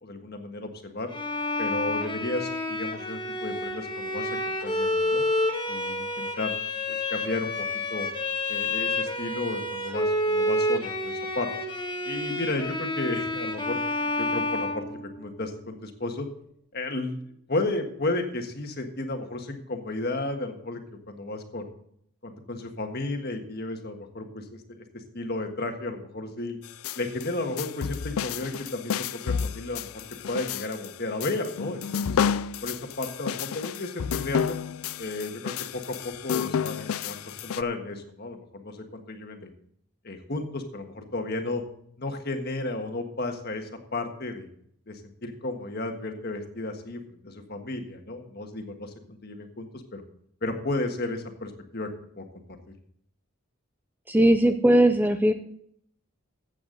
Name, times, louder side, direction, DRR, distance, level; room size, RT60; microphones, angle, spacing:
voice 1, 0.0-1.1 1.6-5.3 5.7-6.6 6.9-8.1 8.5-11.5 12.0-16.3 16.7-17.2 17.5-20.8 21.1-21.7 22.2-24.8 25.1-26.6 26.9-32.2 32.6-34.5 35.0-39.5 40.0-41.6 42.0-44.5 44.9-50.0 50.4-51.9 52.2-52.3, left 2 dB, 45° left, 5 dB, 1.6 m, -33 dB
Bowed string instrument, 1.1-15.4, left 1 dB, 20° left, 1.4 m, -29 dB
sound 1, 26.6-37.6, left 7 dB, 75° left, 0.4 m, -31 dB
voice 2, 54.1-55.3, right 1 dB, 10° right, 8 dB, 0.6 m, -19 dB
14.5 x 8.4 x 4.0 m, 0.67 s
head